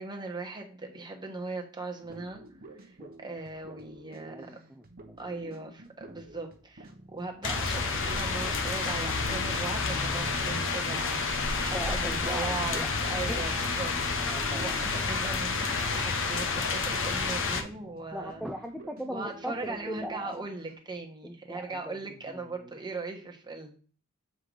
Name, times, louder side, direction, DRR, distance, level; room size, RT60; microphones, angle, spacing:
voice 1, 0.0-2.4 2.8-4.5 5.2-18.4 19.1-23.8, right 3 dB, 20° right, 2 dB, 1.2 m, -39 dB
sound 1, 2.0-13.3 13.6-13.7 13.9-20.7, right 2 dB, 45° right, 1.0 m, -49 dB
voice 2, 4.3-4.9 11.7-12.9 13.3-13.4 14.2-14.8 18.1-20.5 21.2-22.7, equal, ahead, 3 dB, 0.4 m, -39 dB
sound 2, 7.4-17.6, left 4 dB, 60° left, 0.9 m, -29 dB
7.4 x 3.9 x 4.9 m, 0.40 s
head